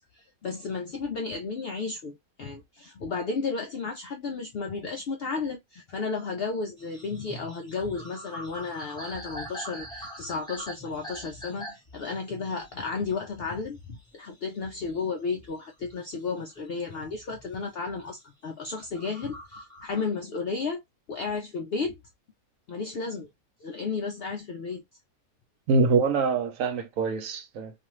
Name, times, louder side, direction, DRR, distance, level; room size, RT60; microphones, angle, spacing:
voice 1, 0.1-20.8 21.1-22.0 22.7-23.3 23.6-24.8, left 4 dB, 70° left, 0.5 m, -33 dB
sound 1, 6.8-16.7 17.1-18.1 18.6-20.1, equal, 5° left, 0.5 m, -44 dB
voice 2, 25.7-27.7, right 4 dB, 70° right, 1.0 m, -24 dB
2.5 x 2.4 x 3.0 m
omnidirectional pair, 1.5 m